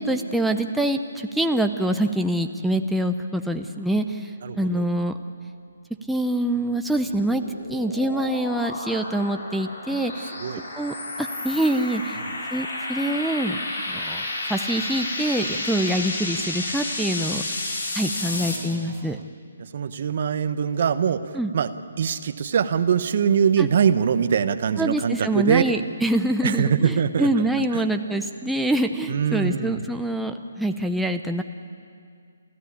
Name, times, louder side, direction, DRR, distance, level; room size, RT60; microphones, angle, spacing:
voice 1, 0.0-5.2 6.1-7.4 7.7-10.3 10.7-12.2 12.5-13.6 13.9-17.6 17.9-19.2 21.3-21.5 23.6-23.7 24.8-31.4, right 1 dB, ahead, 4 dB, 0.6 m, -25 dB
voice 2, 4.4-4.9 10.4-10.6 18.2-19.2 19.6-21.2 21.5-21.7 22.0-25.6 26.4-27.9 29.1-29.9, right 7 dB, 55° right, 12 dB, 1.0 m, -23 dB
sound 1, 6.6-18.6, left 2 dB, 70° left, 4.7 m, -31 dB
28.5 x 14.5 x 8.6 m, 2.3 s
hypercardioid pair, 145°, 0 cm